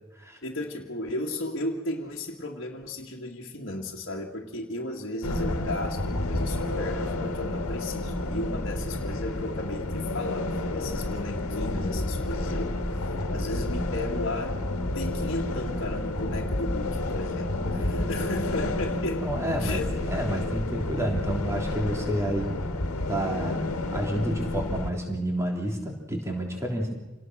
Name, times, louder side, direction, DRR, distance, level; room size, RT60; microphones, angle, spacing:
voice 1, 0.4-19.3 19.6-20.0, left 1 dB, 55° left, -3 dB, 2.1 m, -35 dB
sound 1, 5.2-24.9, left 2 dB, 90° left, 2.0 m, -30 dB
voice 2, 12.9-13.3 17.8-18.1 19.2-22.5 23.1-26.9, right 1 dB, 15° right, 1 dB, 3.4 m, -30 dB
28.0 x 19.0 x 6.4 m, 1.2 s
head